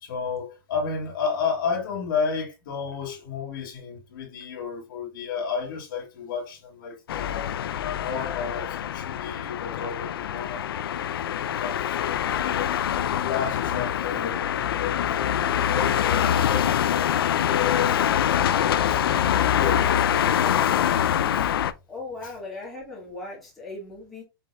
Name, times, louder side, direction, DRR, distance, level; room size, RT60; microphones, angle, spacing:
voice 1, 0.0-7.6 7.8-12.7 13.2-14.5 14.8-21.5 22.2-22.3, left 6 dB, 60° left, 1.8 m, -32 dB
sound 1, 7.1-21.7, left 10 dB, 85° left, 0.5 m, -24 dB
voice 2, 21.9-24.2, left 2 dB, ahead, 2.0 m, -38 dB
5.1 x 4.2 x 2.3 m
supercardioid pair, 160°, 12 cm